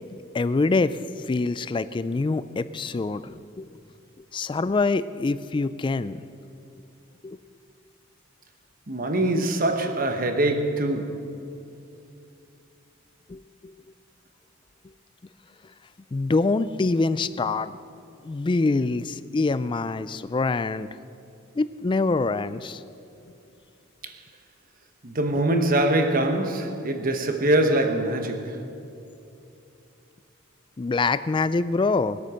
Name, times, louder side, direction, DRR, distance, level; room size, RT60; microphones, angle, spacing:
voice 1, 0.1-3.7 4.3-6.2 7.2-7.4 13.3-13.7 16.1-17.8 18.2-20.9 21.5-22.8 30.8-32.2, left 3 dB, 25° left, 0.3 m, -25 dB
voice 2, 8.9-11.3 24.0-24.2 25.0-28.6, right 1 dB, 40° right, 1.2 m, -23 dB
20.0 x 8.6 x 6.4 m
head